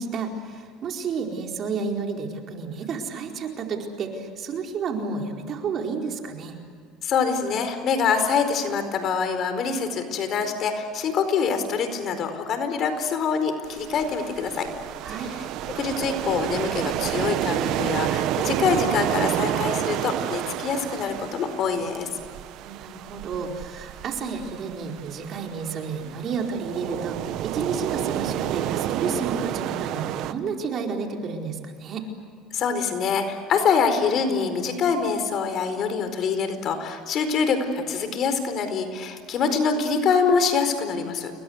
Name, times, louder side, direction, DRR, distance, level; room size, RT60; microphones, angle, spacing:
voice 1, 0.0-6.6 15.0-15.3 22.6-32.1, right 5 dB, 45° right, 2 dB, 4.5 m, -31 dB
voice 2, 7.0-14.7 15.2-15.3 15.8-22.1 32.5-41.3, left 5 dB, 50° left, 9 dB, 4.5 m, -25 dB
sound 1, 13.6-30.3, right 13 dB, 65° right, 1.2 m, -30 dB
29.5 x 22.5 x 8.1 m, 2.1 s
supercardioid pair, 110°, 0 cm